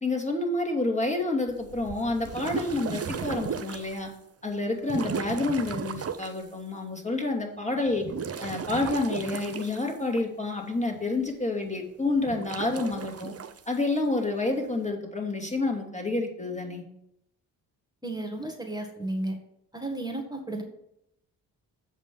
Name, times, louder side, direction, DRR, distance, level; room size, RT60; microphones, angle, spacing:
voice 1, 0.0-4.1 4.4-8.1 8.4-13.3 13.7-16.8, left 2 dB, 15° left, 0 dB, 2.7 m, -29 dB
sound 1, 1.5-4.1 4.8-6.4 7.9-10.2 12.2-13.6, right 6 dB, 35° right, 0.8 m, -35 dB
voice 2, 18.0-19.4 19.7-20.6, right 1 dB, 10° right, 3 dB, 1.8 m, -33 dB
7.8 x 5.3 x 7.1 m, 0.80 s
hypercardioid pair, 40°, 45 cm